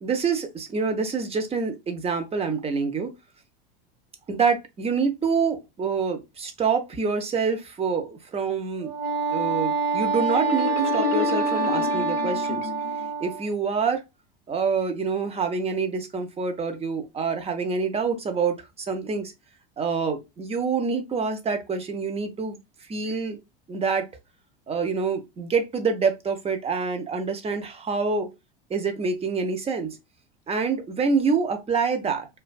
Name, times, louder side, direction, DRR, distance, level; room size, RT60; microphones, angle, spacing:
voice 1, 0.0-3.1 4.3-8.9 9.3-12.6 13.2-14.0 14.5-19.3 19.8-22.6 22.9-23.4 23.7-24.1 24.7-28.3 28.7-30.0 30.5-32.3, right 5 dB, 20° right, 0.5 m, -26 dB
Wind instrument woodwind instrument, 8.8-13.5, right 4 dB, 85° right, 0.8 m, -26 dB
Marimba xylophone, 10.3-13.1, left 9 dB, 60° left, 0.6 m, -30 dB
2.4 x 2.2 x 2.3 m
hypercardioid pair, 90°, 29 cm